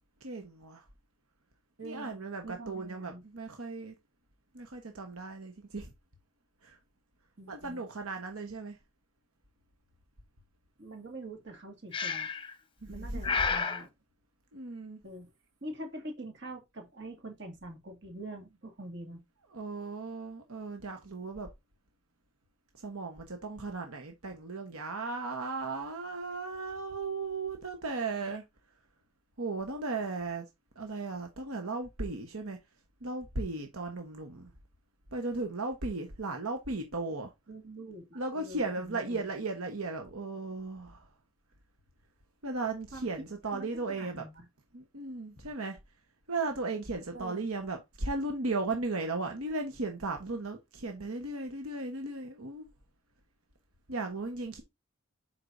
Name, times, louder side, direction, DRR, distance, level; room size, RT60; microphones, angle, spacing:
voice 1, 0.2-0.8 1.8-3.9 4.5-5.9 6.6-6.8 7.5-8.8 12.8-13.3 14.5-15.0 19.5-21.5 22.8-28.4 29.4-30.4 30.8-32.6 33.0-34.5 35.1-37.3 38.1-41.1 42.4-44.2 44.7-45.8 46.3-52.7 53.9-54.6, right 3 dB, 80° right, 1.2 m, -36 dB
voice 2, 1.8-2.2 2.4-3.2 7.4-7.8 10.8-12.3 12.9-13.9 15.0-15.3 15.6-19.2 28.2-28.4 37.5-39.3 42.9-43.1 43.5-44.5 47.1-47.5, right 1 dB, 55° right, 2.3 m, -45 dB
Breathing, 11.9-12.5 13.2-13.8, left 5 dB, 25° left, 0.8 m, -30 dB
7.9 x 5.8 x 2.7 m
head